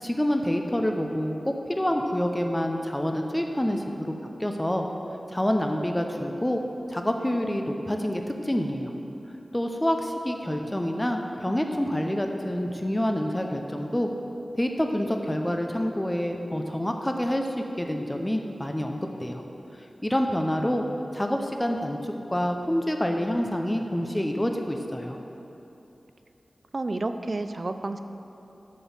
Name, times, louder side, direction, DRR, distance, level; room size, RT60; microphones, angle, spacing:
voice 1, 0.0-4.1 4.4-4.9 5.3-6.6 6.9-8.9 9.5-14.1 14.6-19.4 20.0-20.8 21.1-25.2, equal, 15° left, 3 dB, 0.6 m, -27 dB
voice 2, 20.6-21.1 26.7-28.0, right 2 dB, 50° right, 9 dB, 0.4 m, -31 dB
7.4 x 6.2 x 7.1 m, 3.0 s
wide cardioid pair, 80°, 0 cm